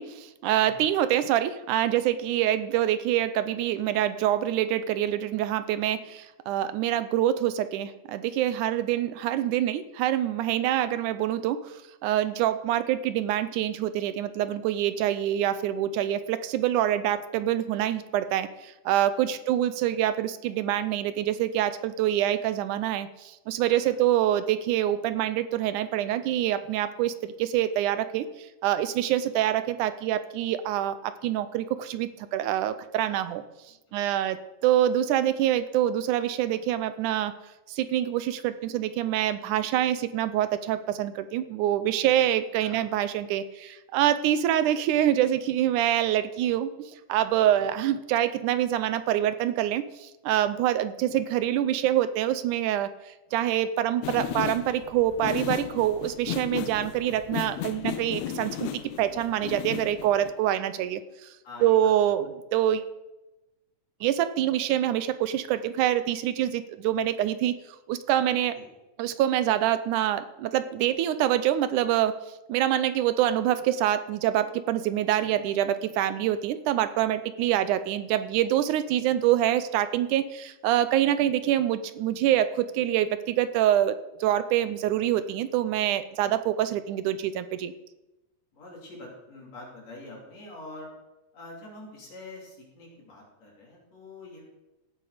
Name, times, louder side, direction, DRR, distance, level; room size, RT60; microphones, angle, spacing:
voice 1, 0.0-11.7 12.0-28.3 28.6-33.4 33.9-37.3 37.7-52.9 53.3-61.0 61.6-62.3 62.5-62.8 64.0-67.6 67.9-68.6 69.0-72.2 72.5-87.7, right 12 dB, 85° right, 12 dB, 2.1 m, -26 dB
voice 2, 47.4-47.8 61.4-61.9 68.5-68.7 75.2-75.3 86.2-86.4 88.5-90.9 91.3-94.4, left 2 dB, 55° left, -3 dB, 4.4 m, -45 dB
sound 1, 54.0-60.3, left 11 dB, 75° left, 1.7 m, -35 dB
16.5 x 7.7 x 4.9 m, 0.99 s
omnidirectional pair, 3.6 m